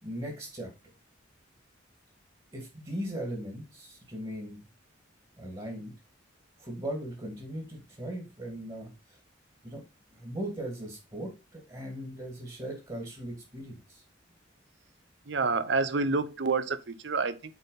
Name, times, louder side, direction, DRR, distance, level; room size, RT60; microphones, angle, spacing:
voice 1, 0.0-0.7 2.5-4.6 5.4-5.9 6.6-9.2 9.6-9.8 10.1-14.0, right 1 dB, 25° right, 2.3 m, -38 dB
voice 2, 15.3-17.5, right 4 dB, 60° right, 0.7 m, -28 dB
8.5 x 4.2 x 4.1 m
head